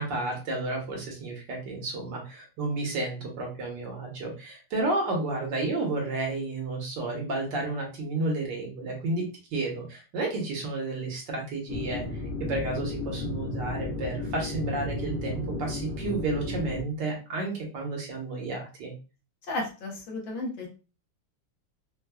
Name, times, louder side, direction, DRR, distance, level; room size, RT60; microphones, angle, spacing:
voice 1, 0.0-12.2 12.5-18.9, right 2 dB, 65° right, -1 dB, 1.6 m, -31 dB
sound 1, 11.7-16.8, left 2 dB, 40° left, 0.8 m, -34 dB
voice 2, 19.5-20.7, left 2 dB, 70° left, -1 dB, 1.7 m, -33 dB
4.8 x 2.2 x 2.2 m, 0.32 s
omnidirectional pair, 2.2 m